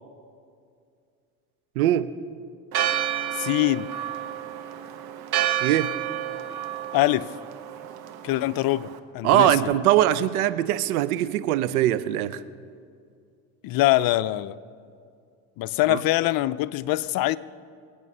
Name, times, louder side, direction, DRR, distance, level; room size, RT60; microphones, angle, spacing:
voice 1, 1.8-2.1 5.6-5.9 9.2-12.4 15.9-16.0, right 13 dB, 90° right, 0.7 m, -21 dB
Church bell, 2.7-9.0, right 11 dB, 60° right, 1.3 m, -30 dB
voice 2, 3.3-3.9 6.9-7.3 8.2-9.7 13.6-14.6 15.6-17.4, left 16 dB, 55° left, 0.6 m, -23 dB
26.0 x 8.8 x 5.5 m
hypercardioid pair, 80°, 42 cm